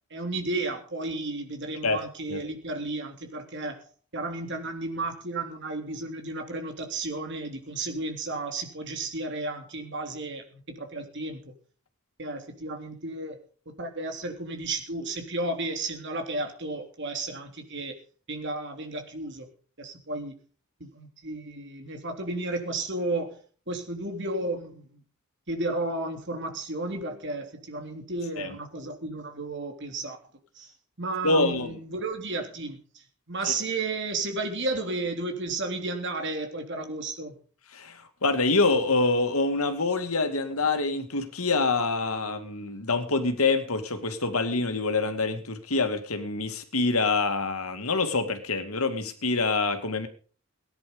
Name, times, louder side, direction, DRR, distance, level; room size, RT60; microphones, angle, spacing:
voice 1, 0.1-3.8 4.1-11.5 12.2-13.4 13.8-18.0 18.3-19.5 19.8-20.3 20.8-25.0 25.5-30.2 30.6-30.7 31.0-37.3, right 2 dB, 55° right, 5 dB, 3.4 m, -33 dB
voice 2, 31.2-31.8 37.7-50.1, left 3 dB, 75° left, 8 dB, 2.3 m, -26 dB
18.5 x 10.5 x 5.3 m, 0.41 s
head